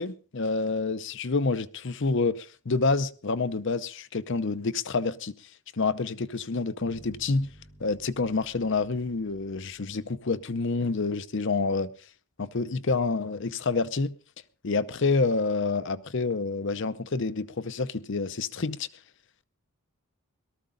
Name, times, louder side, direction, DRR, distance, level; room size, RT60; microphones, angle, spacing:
voice 1, 0.0-5.3 5.7-7.5 7.8-11.9 12.4-14.1 14.6-18.9, left 3 dB, 55° left, 0.7 m, -28 dB
sound 1, 6.8-10.8, right 1 dB, ahead, 5.9 m, -54 dB
18.0 x 13.0 x 3.8 m
head